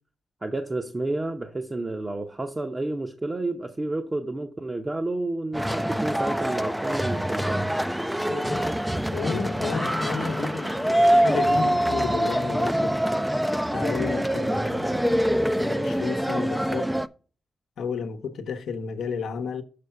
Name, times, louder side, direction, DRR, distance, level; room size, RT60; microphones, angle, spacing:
voice 1, 0.4-7.7, right 2 dB, 25° right, 0.8 m, -30 dB
sound 1, 5.5-17.1, equal, 5° right, 0.4 m, -25 dB
voice 2, 8.3-8.7 9.1-13.0 13.7-16.9 17.8-19.6, left 5 dB, 80° left, 0.9 m, -32 dB
6.7 x 4.5 x 5.7 m
cardioid pair, 75°, 0 cm